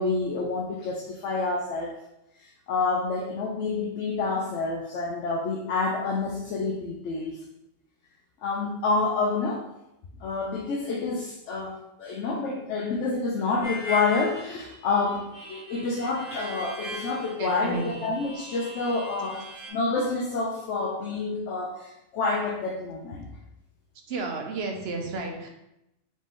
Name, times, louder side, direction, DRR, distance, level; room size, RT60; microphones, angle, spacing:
voice 1, 0.0-1.9 2.7-7.4 8.4-9.7 10.2-19.4 19.7-23.3, left 3 dB, 80° left, -2 dB, 0.9 m, -28 dB
Harmonica, 13.6-19.7, left 1 dB, 40° right, 1.1 m, -39 dB
voice 2, 17.4-18.0 24.1-25.5, right 3 dB, 65° right, 2 dB, 0.9 m, -32 dB
4.2 x 3.1 x 3.5 m, 0.87 s
omnidirectional pair, 1.2 m